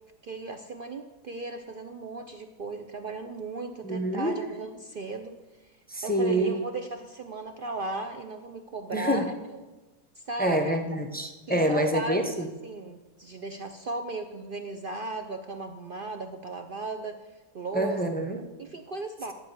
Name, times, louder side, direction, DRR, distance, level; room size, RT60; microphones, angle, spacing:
voice 1, 0.2-5.8 6.0-9.3 10.2-10.8 11.5-17.2 17.5-18.0 18.4-19.3, right 2 dB, 65° right, 6 dB, 0.5 m, -36 dB
voice 2, 3.8-4.4 5.9-6.5 8.9-9.3 10.4-12.5 17.7-18.4, right 1 dB, 15° left, 4 dB, 0.3 m, -26 dB
11.5 x 5.6 x 8.1 m, 1.2 s
omnidirectional pair, 1.7 m